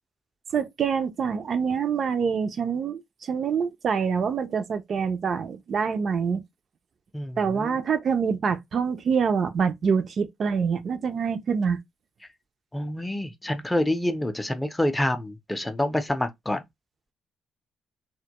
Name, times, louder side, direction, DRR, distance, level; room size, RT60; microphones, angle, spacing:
voice 1, 0.5-6.4 7.4-11.8, right 6 dB, 55° right, 0.3 m, -26 dB
voice 2, 7.1-7.8 12.7-16.6, left 1 dB, 10° left, 0.4 m, -27 dB
2.2 x 2.0 x 2.8 m
cardioid pair, 90°, 0 cm